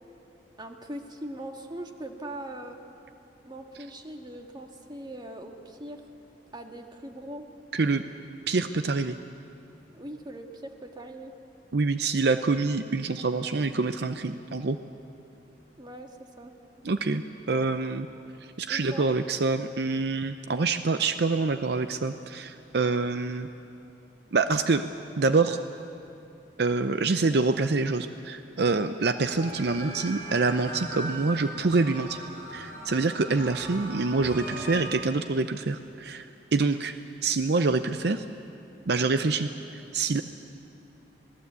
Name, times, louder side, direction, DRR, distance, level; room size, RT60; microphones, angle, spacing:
voice 1, 0.6-2.8 3.4-6.0 6.5-7.5 9.9-11.3 15.8-16.1 16.4-16.5 18.7-19.1, right 1 dB, 25° right, 4 dB, 1.8 m, -40 dB
voice 2, 8.5-9.2 11.7-14.8 16.8-17.2 17.5-18.1 18.6-23.5 24.3-24.8 25.2-25.6 26.6-32.2 32.5-37.0 37.2-38.2 38.9-40.2, right 3 dB, 65° right, 10 dB, 0.6 m, -26 dB
sound 1, 29.2-34.8, right 1 dB, 50° right, 5.3 m, -39 dB
26.5 x 18.5 x 8.3 m, 2.7 s
head